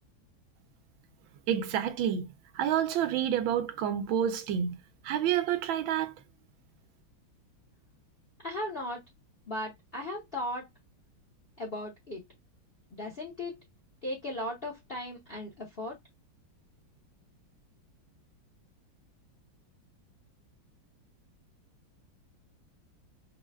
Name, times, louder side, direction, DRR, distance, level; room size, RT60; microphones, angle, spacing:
voice 1, 1.5-4.8 5.0-6.1, right 9 dB, 80° right, 1.4 m, -29 dB
voice 2, 8.4-9.0 9.5-10.6 11.6-12.2 12.9-13.6 14.0-16.0, left 1 dB, 50° left, 0.7 m, -37 dB
4.9 x 2.2 x 3.4 m
omnidirectional pair, 2.2 m